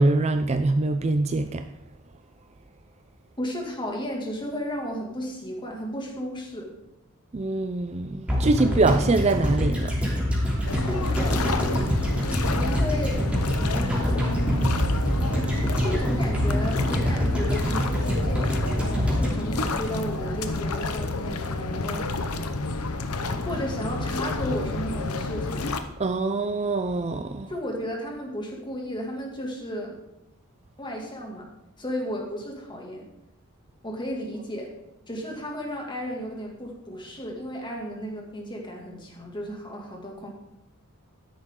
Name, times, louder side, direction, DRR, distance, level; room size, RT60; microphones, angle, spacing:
voice 1, 0.0-1.6 7.3-9.9 26.0-27.5, right 2 dB, 30° right, 0.5 m, -24 dB
voice 2, 3.4-6.7 10.9-11.8 12.4-13.3 13.8-14.8 15.8-22.0 23.3-25.7 27.5-30.0 30.8-31.5 31.8-33.1 33.8-34.7 35.1-40.3, equal, 20° left, 2.4 m, -34 dB
sound 1, 8.3-20.5 20.8-20.9, equal, 5° right, 3.1 m, -25 dB
sound 2, 10.7-25.8, left 3 dB, 85° left, 1.0 m, -30 dB
13.0 x 10.5 x 3.8 m
head